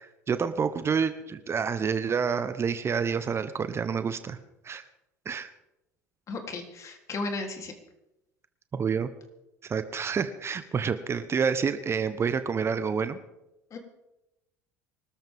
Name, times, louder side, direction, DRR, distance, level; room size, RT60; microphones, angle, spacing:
voice 1, 0.0-4.4 4.6-4.8 5.2-5.5 8.7-9.1 9.6-13.2, right 6 dB, 30° right, 11 dB, 1.1 m, -28 dB
voice 2, 6.3-7.7 13.7-13.8, left 3 dB, 35° left, 3 dB, 3.5 m, -35 dB
25.0 x 13.5 x 3.7 m, 0.91 s
hypercardioid pair, 75°, 9 cm